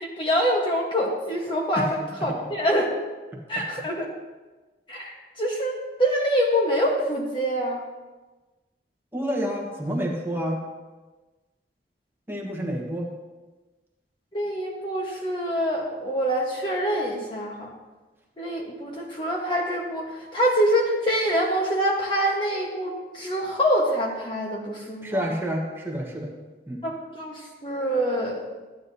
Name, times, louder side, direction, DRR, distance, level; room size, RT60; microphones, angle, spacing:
voice 1, 0.0-2.9 3.5-4.0 4.9-7.8 14.3-17.7 18.4-25.3 26.8-28.5, equal, 30° left, -2 dB, 1.3 m, -25 dB
voice 2, 3.3-3.6 9.1-10.6 12.3-13.1 25.0-26.3 26.7-26.8, equal, 15° right, -1 dB, 1.3 m, -29 dB
14.0 x 9.4 x 2.8 m, 1.2 s
head